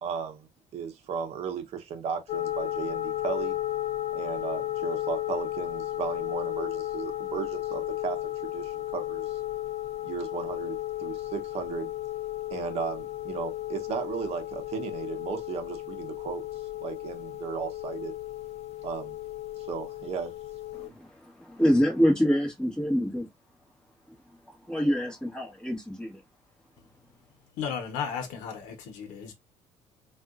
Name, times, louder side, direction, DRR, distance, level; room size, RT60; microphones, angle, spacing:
voice 1, 0.0-3.6 4.1-9.4 10.0-11.9 12.5-16.4 16.8-18.1 18.8-19.2 19.6-20.3, right 6 dB, 55° right, 0.8 m, -35 dB
sound 1, 2.3-20.9, left 14 dB, 55° left, 0.4 m, -34 dB
voice 2, 20.7-23.3 24.7-26.2, equal, 5° left, 1.3 m, -26 dB
voice 3, 27.6-29.3, left 7 dB, 90° left, 0.8 m, -34 dB
3.6 x 2.4 x 2.4 m
cardioid pair, 125°, 13 cm